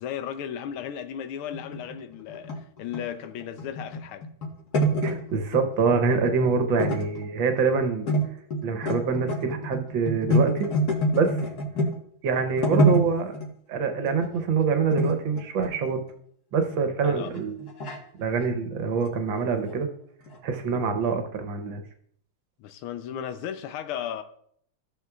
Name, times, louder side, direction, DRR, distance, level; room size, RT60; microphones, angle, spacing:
voice 1, 0.0-4.2 17.0-17.3 22.6-24.2, left 9 dB, 90° left, 1.6 m, -35 dB
sound 1, 1.5-5.6 5.9-6.5 6.8-7.7 8.1-8.3 8.5-12.0 12.4-13.5 14.1-14.3 14.9-16.1 16.7-16.8 17.3-18.0 18.9-19.1 19.4-19.5 19.7-19.8 20.2-20.4, equal, 50° left, 1.8 m, -26 dB
voice 2, 5.0-8.1 8.6-10.7 11.1-11.4 12.2-13.3 13.7-16.0 16.5-17.7 18.2-19.9 20.4-21.8, right 5 dB, 70° right, 1.6 m, -25 dB
15.5 x 6.3 x 2.4 m
omnidirectional pair, 2.3 m